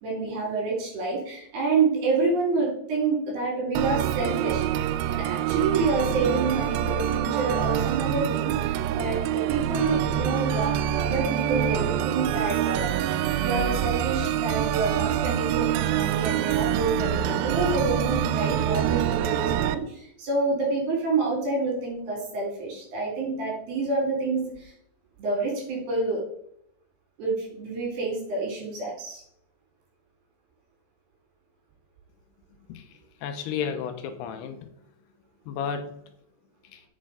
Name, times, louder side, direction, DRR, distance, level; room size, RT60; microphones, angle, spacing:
voice 1, 0.0-4.7 5.1-24.7 25.2-26.2 27.2-29.2, right 3 dB, 65° right, -2 dB, 5.6 m, -28 dB
sound 1, 3.8-19.8, right 11 dB, 85° right, 2.6 m, -26 dB
voice 2, 33.2-34.6 35.5-35.9 36.7-36.8, left 7 dB, 80° left, 7 dB, 2.8 m, -32 dB
8.7 x 6.3 x 5.0 m, 0.72 s
omnidirectional pair, 4.9 m